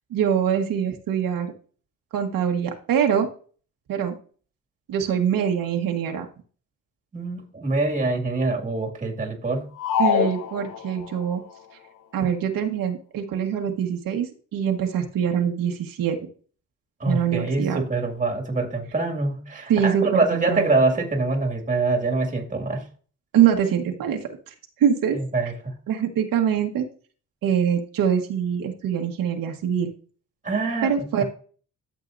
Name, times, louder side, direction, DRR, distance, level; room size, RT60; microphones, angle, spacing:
voice 1, 0.1-1.5 2.1-3.3 3.9-4.1 4.9-6.3 10.0-11.4 12.1-16.2 17.0-17.8 19.7-20.6 23.3-25.2 25.9-26.9 27.4-29.9 30.8-31.2, right 8 dB, 80° right, 3 dB, 1.5 m, -24 dB
voice 2, 7.1-9.7 17.0-22.9 25.1-25.7 30.4-31.2, right 3 dB, 20° right, 2 dB, 2.3 m, -25 dB
sound 1, 9.8-11.2, left 8 dB, 70° left, 0.9 m, -24 dB
12.5 x 7.6 x 2.7 m, 0.41 s
cardioid pair, 130°, 34 cm